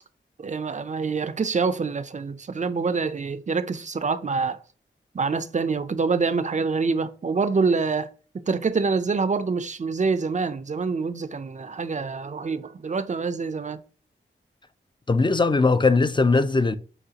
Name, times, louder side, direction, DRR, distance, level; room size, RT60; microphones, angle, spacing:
voice 1, 0.4-4.6 5.1-8.1 8.5-13.8, right 4 dB, 35° right, 0.5 m, -26 dB
voice 2, 15.1-16.8, left 3 dB, 25° left, 0.4 m, -20 dB
6.4 x 2.4 x 2.8 m
cardioid pair, 45°, 21 cm